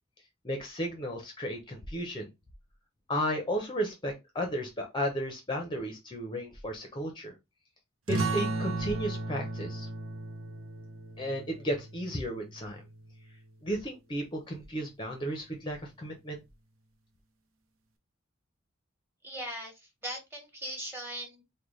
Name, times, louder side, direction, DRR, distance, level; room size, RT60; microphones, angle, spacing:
voice 1, 0.4-2.3 3.1-7.3 8.1-9.9 11.2-12.8 13.6-16.4, equal, 25° left, 3 dB, 0.7 m, -34 dB
sound 1, 8.1-13.3, right 3 dB, 85° right, 0.7 m, -35 dB
voice 2, 19.2-19.7 20.0-21.4, right 1 dB, 10° right, 2 dB, 1.3 m, -39 dB
3.8 x 2.2 x 3.1 m, 0.21 s
head